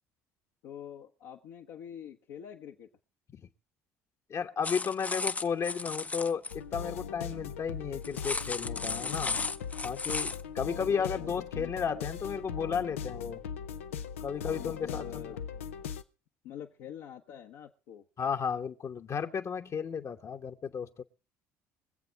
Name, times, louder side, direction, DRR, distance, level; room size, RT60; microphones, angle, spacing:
voice 1, 0.6-2.9 10.8-12.1 14.5-15.4 16.4-18.0, left 9 dB, 75° left, 1.2 m, -46 dB
voice 2, 4.3-9.4 9.8-13.4 14.2-15.4 18.2-21.0, left 6 dB, 45° left, 1.1 m, -33 dB
sound 1, 4.6-6.5 8.0-10.4, left 3 dB, 20° left, 0.7 m, -34 dB
sound 2, 6.5-16.0, left 7 dB, 90° left, 0.6 m, -39 dB
23.5 x 7.9 x 4.6 m
hypercardioid pair, 60°, 7 cm